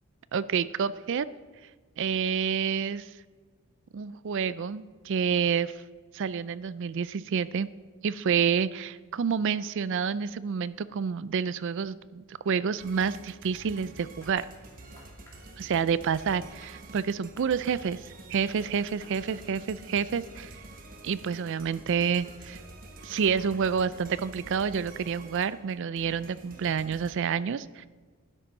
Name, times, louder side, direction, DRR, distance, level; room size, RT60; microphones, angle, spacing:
voice 1, 0.3-1.3 2.0-3.1 3.9-5.7 6.1-7.7 8.0-14.5 15.6-18.0 18.3-20.5 21.0-22.6 23.0-27.9, right 6 dB, 55° right, 16 dB, 0.4 m, -28 dB
sound 1, 12.8-27.1, right 2 dB, 40° right, 1.1 m, -48 dB
sound 2, 13.8-13.9 14.2-14.4 15.0-15.4 16.2-16.3 16.6-16.8 17.4-17.8 18.6-18.7 19.0-19.2, left 2 dB, 10° left, 2.4 m, -55 dB
12.0 x 10.0 x 4.0 m, 1.5 s
head